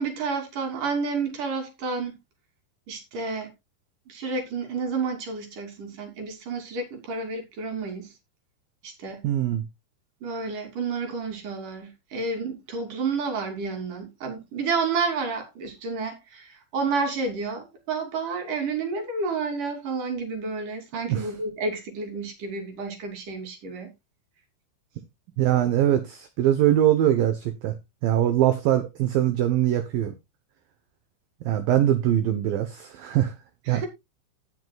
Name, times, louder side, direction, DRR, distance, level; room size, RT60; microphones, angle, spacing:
voice 1, 0.0-2.2 2.9-3.5 4.1-8.1 8.8-9.2 10.2-23.9 33.7-33.9, right 4 dB, 50° right, 4.1 m, -30 dB
voice 2, 9.2-9.6 21.1-21.3 25.4-27.7 28.0-30.2 31.5-33.3 33.7-33.8, right 12 dB, 75° right, 2.2 m, -22 dB
18.0 x 6.4 x 2.3 m
omnidirectional pair, 5.1 m